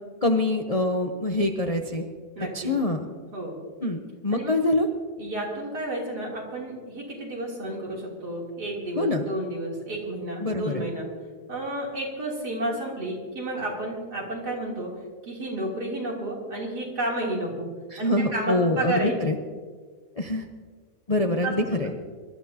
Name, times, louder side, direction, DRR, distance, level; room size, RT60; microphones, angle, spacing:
voice 1, 0.2-2.0 2.5-3.0 3.8-4.9 9.0-9.2 10.4-10.8 17.9-19.4 20.2-20.5 21.1-21.9, left 2 dB, 35° left, 3 dB, 0.6 m, -25 dB
voice 2, 2.4-2.7 3.3-3.5 4.3-4.6 5.2-11.1 11.5-14.9 15.2-19.1 21.4-21.8, right 1 dB, 75° right, -3 dB, 3.8 m, -31 dB
24.5 x 12.5 x 2.8 m, 1.5 s
omnidirectional pair, 1.7 m